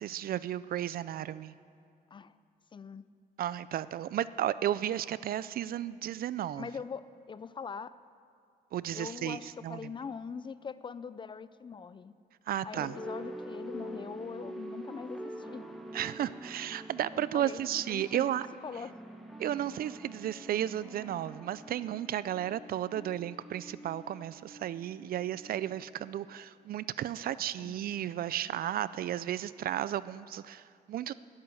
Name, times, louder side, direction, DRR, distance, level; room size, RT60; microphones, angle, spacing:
voice 1, 0.0-1.5 3.4-6.7 8.7-9.4 9.6-9.8 12.5-12.9 15.9-18.5 19.4-31.1, right 11 dB, 70° right, 17 dB, 0.4 m, -33 dB
voice 2, 2.7-3.1 6.6-8.0 8.9-12.1 12.6-15.6 17.1-19.0 22.9-23.2 27.6-27.7, left 6 dB, 30° left, 15 dB, 0.4 m, -42 dB
sound 1, 12.7-26.1, right 1 dB, ahead, 1.2 m, -46 dB
12.5 x 8.8 x 9.6 m, 2.3 s
cardioid pair, 120°, 16 cm